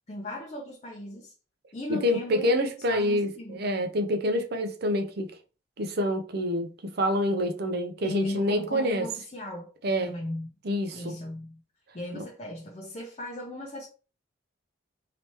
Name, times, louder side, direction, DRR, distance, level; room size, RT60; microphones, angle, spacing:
voice 1, 0.1-1.3 1.7-2.5 2.9-3.6 8.0-9.7 10.0-10.5 10.9-11.6 11.9-13.9, left 1 dB, 30° left, 0.6 m, -36 dB
voice 2, 1.9-5.3 5.8-9.1 9.8-10.1 10.6-11.1 12.1-12.2, equal, 50° right, 0.6 m, -27 dB
3.3 x 2.9 x 3.0 m
head